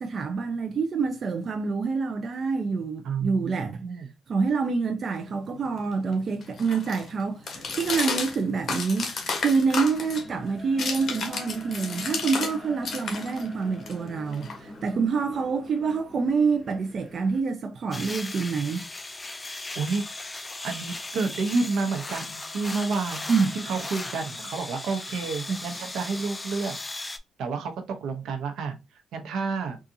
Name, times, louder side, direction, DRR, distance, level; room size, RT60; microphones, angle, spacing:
voice 1, 0.0-9.1 9.4-18.8 23.3-23.5 25.5-25.6, right 5 dB, 50° right, 0.4 m, -27 dB
voice 2, 3.0-4.1 19.8-20.1 20.6-23.2 23.5-27.1 27.4-29.8, right 4 dB, 80° right, 0.8 m, -30 dB
sound 1, 5.2-12.6 12.8-15.0, left 4 dB, 55° left, 1.0 m, -33 dB
sound 2, 7.5-17.4, equal, ahead, 1.0 m, -44 dB
sound 3, 17.9-27.2, left 2 dB, 20° left, 0.4 m, -37 dB
3.8 x 2.4 x 2.6 m
cardioid pair, 90°, 0 cm